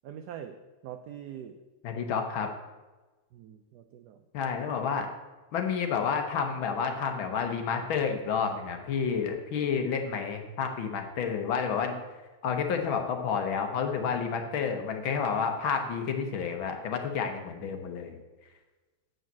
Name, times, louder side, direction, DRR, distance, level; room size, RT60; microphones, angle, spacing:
voice 1, 0.0-0.6 0.8-1.6 3.3-4.2, right 9 dB, 80° right, 8 dB, 0.9 m, -43 dB
voice 2, 1.8-2.5 4.3-5.1 5.5-12.0 12.4-18.2, left 6 dB, 70° left, 4 dB, 1.8 m, -30 dB
7.8 x 5.5 x 7.4 m, 1.2 s
omnidirectional pair, 2.3 m